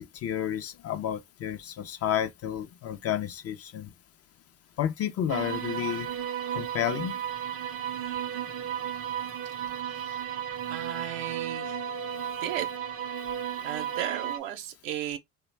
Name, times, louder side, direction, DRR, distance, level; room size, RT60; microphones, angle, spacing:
voice 1, 0.2-3.9 4.8-6.1 6.5-7.1, left 10 dB, 45° left, 0.5 m, -31 dB
sound 1, 5.3-14.4, right 9 dB, 40° right, 0.5 m, -34 dB
voice 2, 10.7-11.8 12.4-12.7 13.6-15.2, right 11 dB, 85° right, 0.7 m, -35 dB
2.5 x 2.2 x 3.2 m
supercardioid pair, 75°, 36 cm